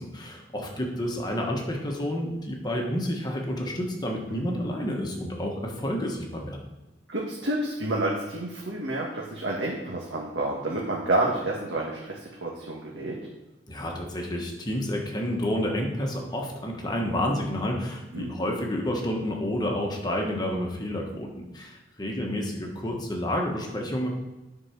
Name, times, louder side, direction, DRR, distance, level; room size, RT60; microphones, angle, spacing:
voice 1, 0.0-6.6 13.7-24.1, left 1 dB, 25° left, 0 dB, 1.3 m, -30 dB
voice 2, 4.3-4.6 7.1-13.1 18.1-18.3, right 2 dB, 85° right, -3 dB, 1.5 m, -29 dB
10.0 x 4.6 x 5.9 m, 1.1 s
head